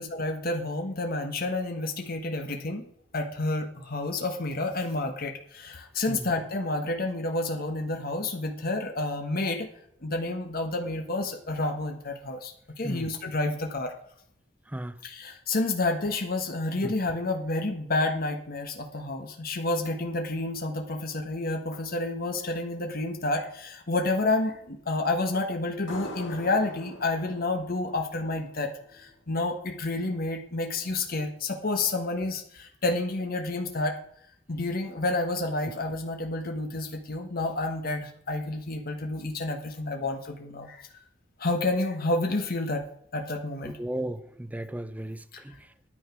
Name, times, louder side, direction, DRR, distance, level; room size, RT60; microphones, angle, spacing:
voice 1, 0.0-2.8 3.1-9.7 10.0-13.9 15.0-33.9 34.5-40.9 41.4-42.8 43.1-43.8, left 2 dB, 50° left, 1.4 m, -29 dB
sound 1, 25.9-29.2, left 1 dB, 85° left, 2.9 m, -43 dB
voice 2, 43.6-45.5, right 1 dB, 10° right, 0.6 m, -35 dB
10.0 x 9.1 x 6.1 m
head